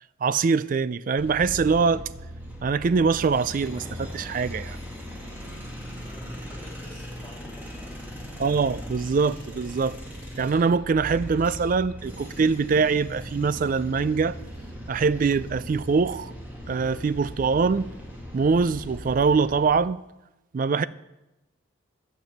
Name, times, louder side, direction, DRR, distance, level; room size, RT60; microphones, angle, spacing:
voice 1, 0.2-2.1 2.6-4.8 8.4-10.0 10.4-14.4 14.9-16.3 16.7-17.9 18.3-20.0 20.5-20.9, right 5 dB, 40° right, 0.3 m, -23 dB
sound 1, 1.2-19.7, equal, 10° right, 1.9 m, -39 dB
voice 2, 5.9-8.4, left 1 dB, 5° left, 3.6 m, -49 dB
10.5 x 7.4 x 6.5 m
head